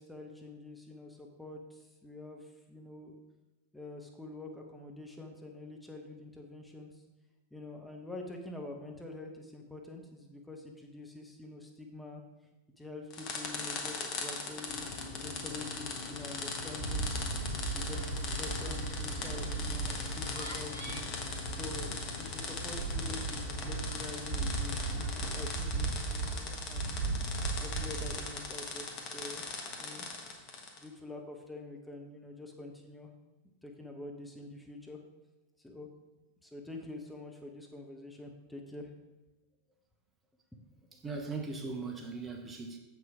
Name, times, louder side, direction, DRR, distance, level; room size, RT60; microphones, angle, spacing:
voice 1, 0.0-3.2 3.7-7.0 7.5-12.2 12.8-14.9 15.2-17.1 17.7-21.1 21.5-27.1 27.6-30.1 30.8-33.1 33.6-35.0 35.6-35.9 36.4-38.9 40.9-41.0, left 2 dB, 5° left, 1 dB, 1.0 m, -46 dB
sound 1, 13.1-30.9, left 4 dB, 40° left, 1.2 m, -40 dB
sound 2, 14.7-25.4, left 4 dB, 60° left, 0.8 m, -45 dB
sound 3, 16.8-28.2, right 3 dB, 90° left, 1.3 m, -37 dB
voice 2, 40.9-42.8, right 4 dB, 15° right, 3 dB, 1.0 m, -39 dB
7.6 x 6.1 x 4.9 m, 1.1 s
figure-of-eight pair, 90°, 0 cm